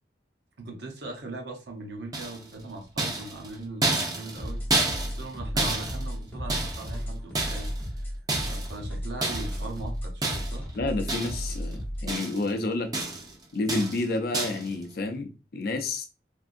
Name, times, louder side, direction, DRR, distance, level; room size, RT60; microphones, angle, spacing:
voice 1, 0.6-8.0 8.4-10.7, right 2 dB, 80° right, 0.8 m, -40 dB
sound 1, 2.1-2.6 3.0-7.0 7.3-7.9 8.3-8.8 9.2-9.6 10.2-10.7 11.1-11.6 11.8-12.5 12.9-13.3 13.7-14.0 14.3-14.7, right 2 dB, 20° right, 0.6 m, -30 dB
sound 2, 4.4-12.1, equal, 10° left, 0.9 m, -34 dB
voice 2, 10.8-12.9 13.5-16.1, left 2 dB, 55° left, 0.4 m, -29 dB
3.4 x 2.5 x 2.5 m
head